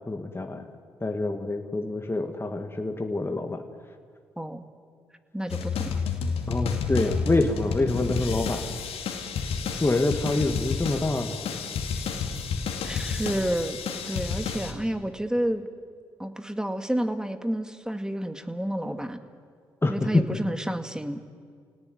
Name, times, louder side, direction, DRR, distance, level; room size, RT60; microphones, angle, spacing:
voice 1, 0.1-0.7 1.0-3.6 6.5-8.7 9.8-11.4 19.8-20.2, left 2 dB, 25° left, 4 dB, 2.2 m, -26 dB
voice 2, 4.4-4.7 5.3-6.0 12.8-13.8 14.0-15.7 16.2-19.2 19.9-21.2, right 1 dB, 5° right, 8 dB, 2.2 m, -30 dB
sound 1, 5.5-14.7, left 5 dB, 75° left, 2.5 m, -30 dB
28.5 x 18.0 x 9.6 m, 2.1 s
hypercardioid pair, 45°, 10 cm